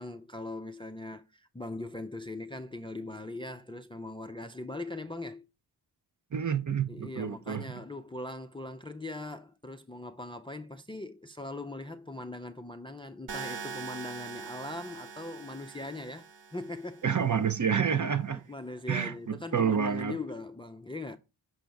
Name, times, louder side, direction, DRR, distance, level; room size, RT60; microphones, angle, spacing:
voice 1, 0.0-5.4 6.9-16.3 16.5-17.1 18.3-21.2, left 2 dB, 10° left, 0.4 m, -40 dB
voice 2, 6.3-7.6 17.0-18.4 18.9-20.2, right 7 dB, 35° right, 0.7 m, -28 dB
sound 1, 13.3-17.3, right 5 dB, 60° right, 1.0 m, -43 dB
6.2 x 5.1 x 3.4 m
cardioid pair, 50°, 50 cm